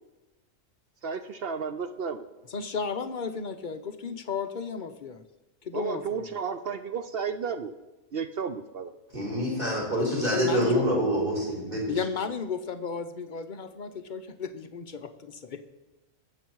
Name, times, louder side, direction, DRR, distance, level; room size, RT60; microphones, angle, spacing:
voice 1, 1.0-2.3 5.7-7.7 8.1-8.9, right 6 dB, 60° right, 9 dB, 0.6 m, -32 dB
voice 2, 2.5-5.2 5.6-6.3 10.1-10.9 11.9-15.7, left 5 dB, 50° left, 9 dB, 0.6 m, -34 dB
voice 3, 9.1-11.9, equal, 35° right, -3 dB, 4.5 m, -26 dB
21.0 x 7.8 x 4.6 m, 1.1 s
omnidirectional pair, 1.6 m